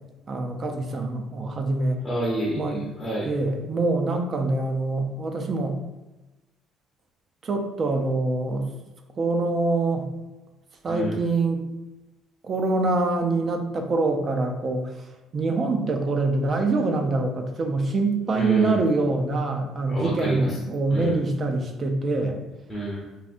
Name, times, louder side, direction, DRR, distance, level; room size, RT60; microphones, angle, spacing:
voice 1, 0.3-2.0 2.6-2.9 3.2-5.8 7.4-8.7 9.2-10.1 10.8-11.7 12.4-14.9 15.3-22.4, right 3 dB, 30° right, 4 dB, 0.4 m, -25 dB
voice 2, 2.0-3.3 10.9-11.1 18.3-18.8 19.9-20.6 20.9-21.1 22.7-23.0, equal, 10° left, -7 dB, 0.6 m, -29 dB
3.4 x 2.6 x 2.5 m, 1.1 s
cardioid pair, 155°, 0 cm